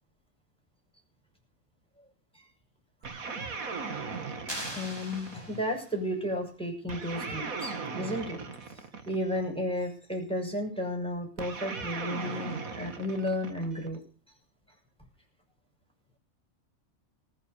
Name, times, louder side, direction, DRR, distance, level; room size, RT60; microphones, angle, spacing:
sound 1, 3.0-5.6 6.9-9.5 11.4-14.0, right 4 dB, 75° right, 2.3 m, -38 dB
sound 2, 4.5-6.0, equal, 15° right, 5.6 m, -40 dB
voice 1, 4.7-8.4 8.7-14.0, left 1 dB, 5° left, 2 dB, 6.7 m, -33 dB
20.0 x 8.8 x 8.2 m, 0.39 s
omnidirectional pair, 1.5 m